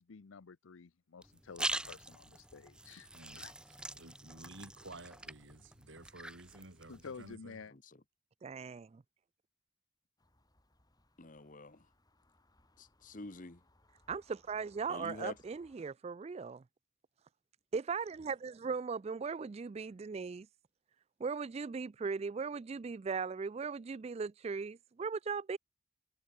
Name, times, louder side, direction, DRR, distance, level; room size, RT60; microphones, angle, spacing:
voice 1, 0.0-3.1 3.4-3.5 6.9-7.7, left 5 dB, 80° left, 0.6 m, -51 dB
sound 1, 1.2-7.3, right 1 dB, 5° right, 1.3 m, -43 dB
voice 2, 4.0-7.6, right 2 dB, 65° right, 5.1 m, -52 dB
voice 3, 8.4-9.0 14.1-16.6 17.7-20.5 21.2-25.6, right 5 dB, 30° right, 0.3 m, -38 dB
sound 2, 10.2-15.8, left 1 dB, 20° left, 6.7 m, -70 dB
voice 4, 11.2-11.8 12.8-13.6 14.9-15.3, left 2 dB, 40° left, 1.3 m, -47 dB
head